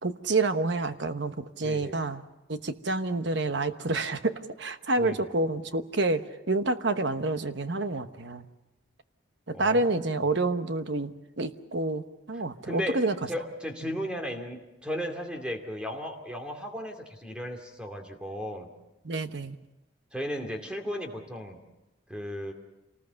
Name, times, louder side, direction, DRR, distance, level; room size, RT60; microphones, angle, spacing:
voice 1, 0.0-2.2 2.5-8.5 9.5-13.1 19.0-19.6, right 2 dB, 60° right, 10 dB, 1.1 m, -28 dB
voice 2, 1.6-2.1 5.0-5.3 9.5-10.1 12.3-18.7 20.1-21.6 22.1-22.5, equal, 5° right, 3 dB, 2.5 m, -35 dB
27.5 x 19.5 x 6.9 m, 0.99 s
head